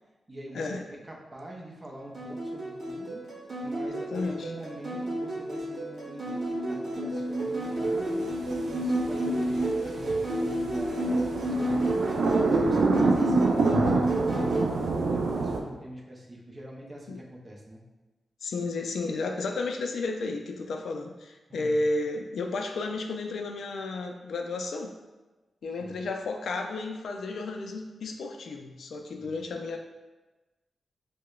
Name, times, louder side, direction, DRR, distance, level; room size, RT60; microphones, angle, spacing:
voice 1, 0.3-3.2 3.6-8.3 8.6-12.2 12.5-17.8 21.5-21.8 25.8-26.0 29.2-29.4, right 1 dB, 25° right, -2 dB, 0.5 m, -43 dB
sound 1, 2.1-14.6, right 1 dB, 45° right, 1.0 m, -30 dB
voice 2, 3.9-4.5 17.1-17.2 18.4-24.9 25.6-29.8, left 3 dB, 75° left, 3 dB, 0.3 m, -32 dB
sound 2, 7.9-15.6, right 3 dB, 80° right, 0.3 m, -28 dB
4.7 x 2.1 x 2.3 m, 1.2 s
wide cardioid pair, 140°, 0 cm